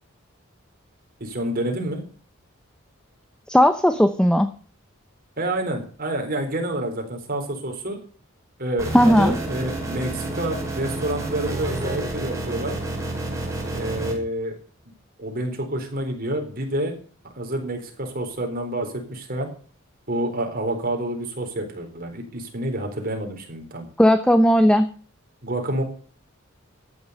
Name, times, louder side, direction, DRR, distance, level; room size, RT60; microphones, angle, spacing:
voice 1, 1.2-2.0 5.4-8.0 8.6-12.8 13.7-14.6 15.2-16.9 17.3-19.5 20.1-23.9 25.4-25.8, right 1 dB, 45° right, 4 dB, 4.1 m, -28 dB
voice 2, 3.5-4.5 8.9-9.4 24.0-24.9, equal, 5° left, 10 dB, 0.7 m, -16 dB
sound 1, 8.8-14.1, right 2 dB, 15° right, 5.9 m, -29 dB
14.5 x 9.8 x 6.7 m, 0.42 s
head